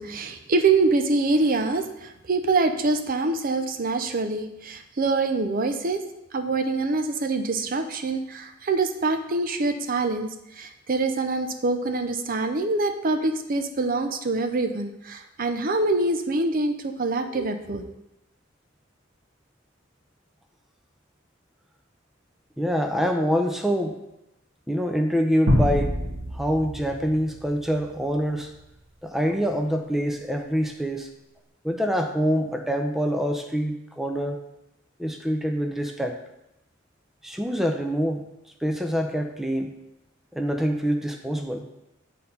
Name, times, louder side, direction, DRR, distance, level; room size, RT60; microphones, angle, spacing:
voice 1, 0.0-6.0 6.3-17.9, right 3 dB, 45° right, 7 dB, 0.6 m, -25 dB
voice 2, 22.6-24.0 24.7-26.0 26.3-28.5 29.0-31.1 31.6-34.4 35.0-36.2 37.2-38.2 38.6-39.7 40.3-41.7, equal, ahead, 3 dB, 0.5 m, -25 dB
sound 1, 25.5-28.0, left 1 dB, 90° right, 1.8 m, -26 dB
8.6 x 4.2 x 5.5 m, 0.88 s
head